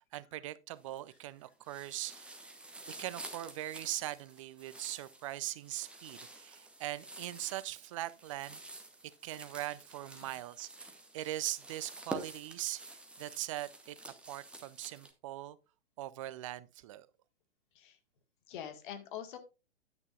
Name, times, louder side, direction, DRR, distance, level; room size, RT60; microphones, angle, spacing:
voice 1, 0.0-2.4 3.0-8.8 9.2-10.9 11.1-14.0 14.3-15.6 16.0-17.1, right 15 dB, 30° right, 0.5 m, -41 dB
sound 1, 0.8-1.3 1.6-15.1, right 2 dB, 5° right, 1.0 m, -49 dB
voice 2, 2.6-3.0 10.2-10.3 17.7-18.0 18.5-19.4, left 9 dB, 45° left, 1.8 m, -45 dB
10.5 x 9.0 x 2.4 m
figure-of-eight pair, 120°, 34 cm